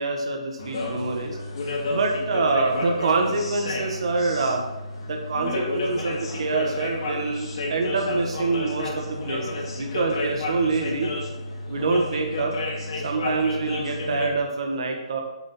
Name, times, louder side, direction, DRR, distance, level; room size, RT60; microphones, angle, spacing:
voice 1, 0.0-1.4 1.9-4.6 5.0-11.1 11.7-12.5 13.0-15.2, right 3 dB, 55° right, 3 dB, 1.4 m, -26 dB
sound 1, 0.6-14.3, left 2 dB, 50° left, 2.5 m, -31 dB
7.8 x 7.5 x 4.3 m, 1.0 s
hypercardioid pair, 165°, 4 cm